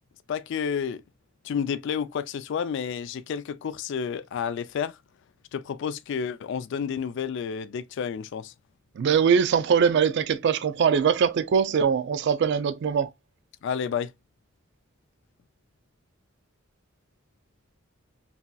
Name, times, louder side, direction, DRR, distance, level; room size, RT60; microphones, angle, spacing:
voice 1, 0.3-1.0 1.4-5.0 5.5-8.5 13.6-14.1, left 7 dB, 60° left, 0.3 m, -30 dB
voice 2, 9.0-13.1, right 7 dB, 55° right, 0.3 m, -22 dB
3.0 x 2.7 x 2.2 m
head